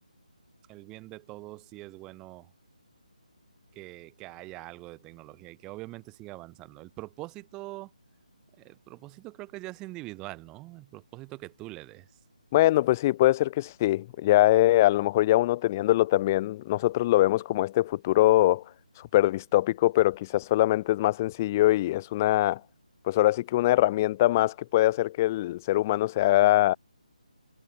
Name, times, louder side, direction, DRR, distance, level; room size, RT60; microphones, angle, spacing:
voice 1, 0.7-2.5 3.7-7.9 8.6-12.1, right 20 dB, 15° right, 4.3 m, -43 dB
voice 2, 12.5-18.6 19.1-22.6 23.1-26.7, left 15 dB, 20° left, 0.5 m, -23 dB
figure-of-eight pair, 155°, 4 cm